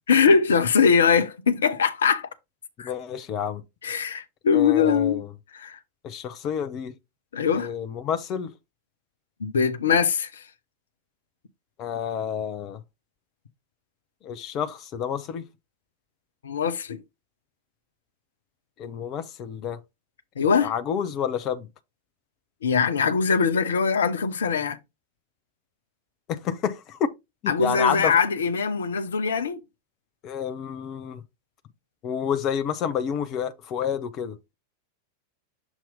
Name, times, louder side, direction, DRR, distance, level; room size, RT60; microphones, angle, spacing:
voice 1, 0.1-2.3 2.8-2.9 3.8-5.2 5.5-5.8 7.3-7.7 9.4-10.4 16.4-17.0 20.4-20.7 22.6-24.8 27.5-29.6, left 6 dB, 65° left, 0.7 m, -22 dB
voice 2, 2.8-3.6 4.5-5.3 6.0-6.9 7.5-8.5 11.8-12.8 14.2-15.4 18.8-19.8 20.4-21.7 26.3-27.1 27.4-28.2 30.2-31.2 32.0-34.4, left 8 dB, 35° left, 0.7 m, -29 dB
7.0 x 2.9 x 5.3 m
figure-of-eight pair, 90°, 0 cm